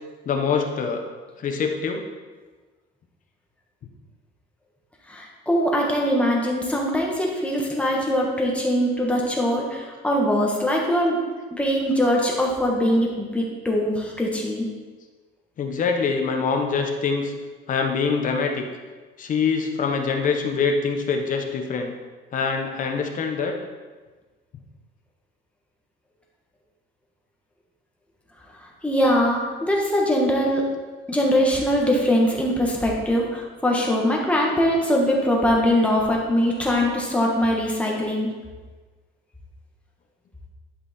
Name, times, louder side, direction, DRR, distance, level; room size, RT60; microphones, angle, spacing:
voice 1, 0.3-1.0 1.4-2.0 15.6-17.3 17.7-18.7 19.2-21.9 22.3-23.5, left 5 dB, 40° left, 4 dB, 0.9 m, -24 dB
voice 2, 5.1-11.2 11.5-14.7 28.8-30.7 31.1-38.3, equal, 5° left, -2 dB, 1.3 m, -22 dB
11.0 x 5.5 x 4.2 m, 1.3 s
cardioid pair, 180°, 21 cm